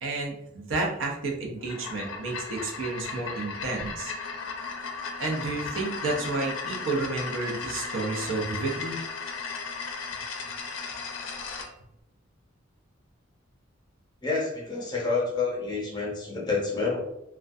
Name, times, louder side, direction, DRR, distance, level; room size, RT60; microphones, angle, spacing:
voice 1, 0.0-4.1 5.2-9.0, right 3 dB, 70° right, -1 dB, 0.5 m, -31 dB
sound 1, 1.6-11.7, left 4 dB, 75° left, 0.4 m, -36 dB
voice 2, 14.2-17.0, left 4 dB, 20° left, -3 dB, 0.6 m, -28 dB
2.3 x 2.2 x 2.5 m, 0.81 s
head